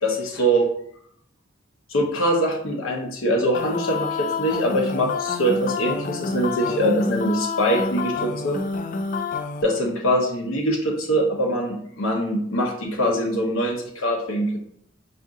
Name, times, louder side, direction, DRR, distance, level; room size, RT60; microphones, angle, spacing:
voice 1, 0.0-0.7 1.9-8.6 9.6-14.6, equal, 85° left, 1 dB, 0.9 m, -23 dB
sound 1, 3.5-9.6, left 5 dB, 40° left, 0.3 m, -28 dB
4.2 x 2.6 x 3.7 m, 0.68 s
head